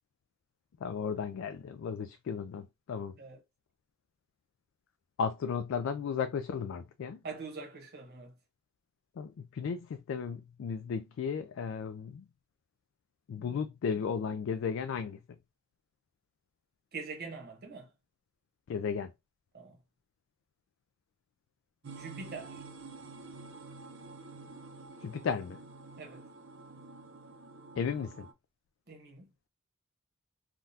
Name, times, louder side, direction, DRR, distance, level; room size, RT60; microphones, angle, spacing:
voice 1, 0.8-3.1 5.2-7.2 9.2-12.2 13.3-15.2 18.7-19.1 25.0-25.6 27.8-28.3, left 6 dB, 65° left, 0.3 m, -35 dB
voice 2, 7.2-8.3 13.4-13.6 16.9-17.9 19.5-19.8 22.0-22.6 26.0-26.2 28.9-29.3, right 4 dB, 50° right, 1.1 m, -44 dB
sound 1, 21.8-28.3, right 3 dB, 65° right, 0.7 m, -49 dB
3.6 x 2.3 x 2.6 m
head